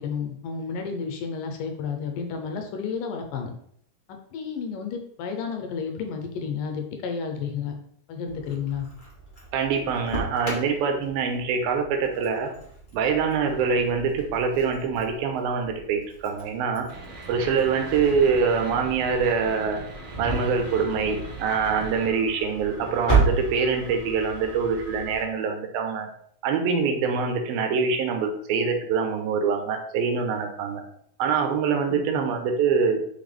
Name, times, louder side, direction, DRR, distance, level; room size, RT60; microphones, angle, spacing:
voice 1, 0.0-3.5 4.1-7.7 8.1-8.9 31.9-32.2, left 6 dB, 75° left, 4 dB, 2.5 m, -31 dB
Engine starting, 8.3-25.2, right 3 dB, 30° left, 0.9 m, -33 dB
voice 2, 9.5-12.5 12.9-16.9 17.3-19.8 20.2-26.1 26.4-30.8 31.2-33.0, right 5 dB, 85° right, 4 dB, 2.8 m, -24 dB
sound 1, 16.9-22.1, right 2 dB, 65° right, 1.4 m, -41 dB
6.4 x 5.8 x 3.4 m, 0.67 s
omnidirectional pair, 4.1 m